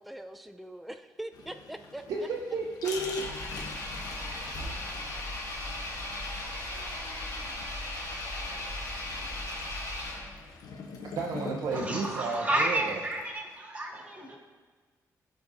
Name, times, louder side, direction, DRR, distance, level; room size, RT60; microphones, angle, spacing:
voice 1, 0.0-2.3, right 1 dB, ahead, 8 dB, 0.3 m, -42 dB
sound 1, 1.3-13.5, left 4 dB, 85° left, 0.8 m, -45 dB
voice 2, 2.1-3.2 11.2-13.0, right 3 dB, 75° right, -2 dB, 0.7 m, -32 dB
Engine, 2.8-10.6, left 1 dB, 55° left, 2.0 m, -37 dB
voice 3, 11.7-14.4, right 1 dB, 20° right, -2 dB, 2.1 m, -31 dB
14.0 x 5.0 x 2.7 m, 1.4 s
cardioid pair, 110°, 6 cm